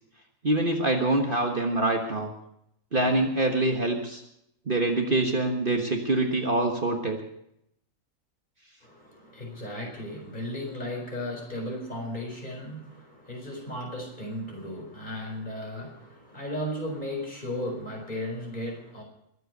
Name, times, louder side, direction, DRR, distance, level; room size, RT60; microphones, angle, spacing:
voice 1, 0.4-2.3 2.9-4.2 4.7-7.2, right 2 dB, 40° right, 3 dB, 1.5 m, -25 dB
voice 2, 8.8-19.0, left 1 dB, 35° left, 0 dB, 4.8 m, -35 dB
22.0 x 8.0 x 6.6 m, 0.77 s
omnidirectional pair, 1.4 m